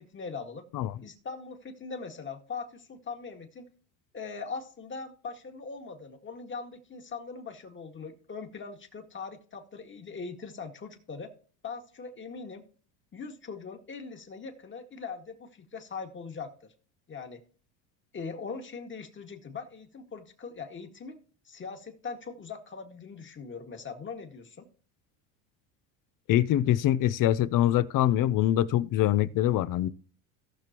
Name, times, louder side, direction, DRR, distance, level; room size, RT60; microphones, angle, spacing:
voice 1, 0.0-0.7 1.0-3.7 4.1-11.3 11.6-12.6 13.1-16.7 17.1-17.4 18.1-21.2 21.5-24.7, left 5 dB, 25° left, 2.0 m, -41 dB
voice 2, 26.3-29.9, left 12 dB, 50° left, 0.7 m, -24 dB
17.5 x 6.0 x 3.0 m
supercardioid pair, 105°, 43 cm